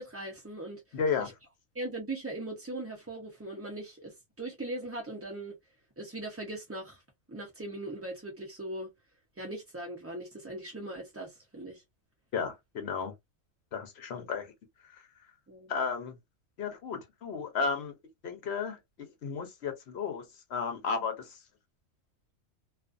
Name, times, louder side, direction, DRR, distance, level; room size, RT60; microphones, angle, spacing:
voice 1, 0.0-1.3 1.7-5.5 6.0-7.0 7.3-8.9 9.4-11.8 15.5-15.7, right 1 dB, 25° right, 0.3 m, -40 dB
voice 2, 0.9-1.3 12.3-13.1 13.7-14.5 15.7-16.1 16.6-17.9 18.2-20.2 20.5-21.4, left 5 dB, 55° left, 0.8 m, -33 dB
2.4 x 2.4 x 2.4 m
omnidirectional pair, 1.5 m